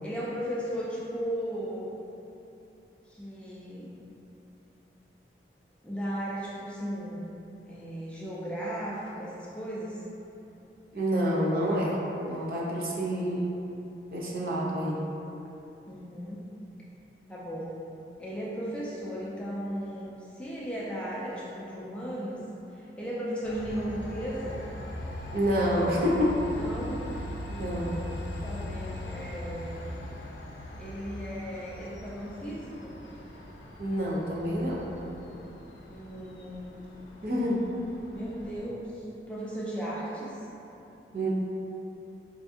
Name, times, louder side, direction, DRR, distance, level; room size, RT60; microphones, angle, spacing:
voice 1, 0.0-1.9 3.1-4.0 5.8-7.3 7.7-10.0 15.9-16.5 17.3-17.8 18.2-22.4 22.7-24.6 26.5-27.2 27.5-27.9 28.4-29.8 30.8-33.0 35.9-36.8 38.1-40.5, equal, 5° left, -7 dB, 0.3 m, -36 dB
voice 2, 10.9-12.0 12.3-13.5 14.1-15.0 25.3-26.5 27.5-28.0 33.8-34.8 37.2-37.7 41.1-41.3, equal, 55° right, -4 dB, 0.5 m, -28 dB
Train, 23.4-38.6, left 1 dB, 90° left, 0.5 m, -40 dB
4.4 x 2.6 x 2.3 m, 3.0 s
head